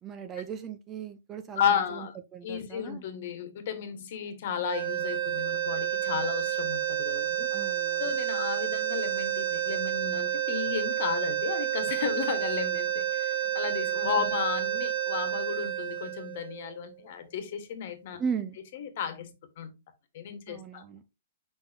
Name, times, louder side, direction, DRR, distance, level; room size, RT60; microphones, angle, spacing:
voice 1, 0.0-2.1 2.3-3.0 7.5-8.0 14.2-14.3 18.2-18.6 20.5-21.0, right 7 dB, 15° right, 0.5 m, -37 dB
voice 2, 1.5-2.2 2.4-7.5 8.0-18.2 18.7-19.7 20.1-20.8, left 8 dB, 45° left, 1.4 m, -33 dB
sound 1, 4.6-16.9, right 11 dB, 50° right, 1.7 m, -30 dB
7.0 x 5.3 x 2.8 m
hypercardioid pair, 170°, 0 cm